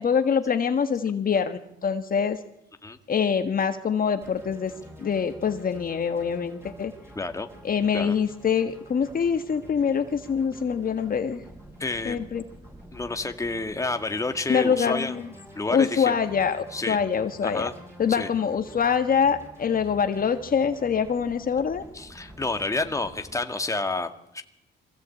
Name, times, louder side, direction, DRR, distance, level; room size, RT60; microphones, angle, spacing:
voice 1, 0.0-2.4 3.1-4.7 5.0-6.9 7.6-11.4 12.0-12.4 14.5-15.3 15.7-17.7 18.0-21.8, left 6 dB, 45° left, 8 dB, 1.6 m, -24 dB
sound 1, 4.2-23.4, equal, 10° right, 8.0 m, -48 dB
voice 2, 7.2-7.5 7.9-8.1 11.8-12.3 12.9-15.2 15.5-16.1 16.7-17.0 17.4-17.7 18.1-18.3 21.9-24.4, left 3 dB, 15° left, 6 dB, 1.9 m, -29 dB
23.5 x 16.5 x 8.5 m, 0.79 s
cardioid pair, 90°, 20 cm